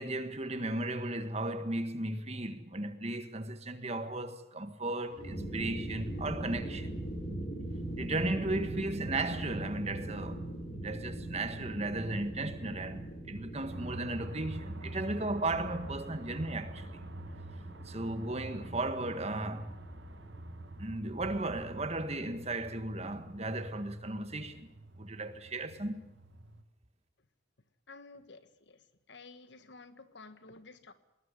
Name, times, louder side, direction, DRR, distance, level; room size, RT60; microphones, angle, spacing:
voice 1, 0.0-7.0 8.0-10.4 10.8-16.9 17.8-19.7 20.8-24.7 25.0-26.0, right 2 dB, 30° right, 1.6 m, -35 dB
sound 1, 5.1-23.9, right 1 dB, 30° left, 6.8 m, -42 dB
sound 2, 13.7-26.6, right 1 dB, 60° right, 1.7 m, -47 dB
voice 2, 27.9-28.8 29.1-30.9, left 3 dB, 60° left, 1.5 m, -52 dB
20.5 x 19.5 x 9.8 m
head